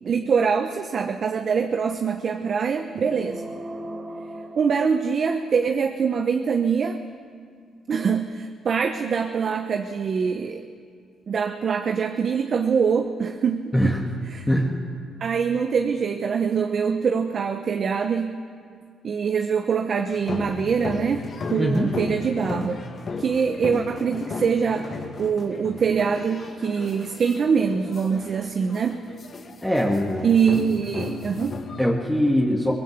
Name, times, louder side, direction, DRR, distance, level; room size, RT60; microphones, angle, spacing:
voice 1, 0.0-3.4 4.6-7.0 7.9-10.6 11.3-14.0 14.3-14.5 15.2-18.4 19.0-22.8 23.2-29.1 30.2-31.7, right 6 dB, 50° right, 6 dB, 1.1 m, -24 dB
sound 1, 2.9-5.6, right 1 dB, 25° right, 3.6 m, -38 dB
sound 2, 20.1-31.9, left 4 dB, 40° left, 2.0 m, -35 dB
voice 2, 21.6-21.9 29.6-30.3 31.8-32.7, equal, 5° left, -2 dB, 2.3 m, -21 dB
22.5 x 19.5 x 8.2 m, 2.1 s
cardioid pair, 100°, 0 cm